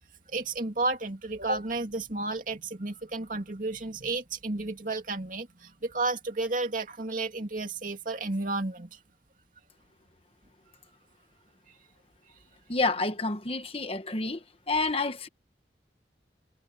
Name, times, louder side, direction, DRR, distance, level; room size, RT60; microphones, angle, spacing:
voice 1, 0.3-9.0, right 2 dB, 50° right, 2.6 m, -32 dB
voice 2, 12.7-14.4 14.7-15.3, left 3 dB, 30° left, 1.2 m, -29 dB
head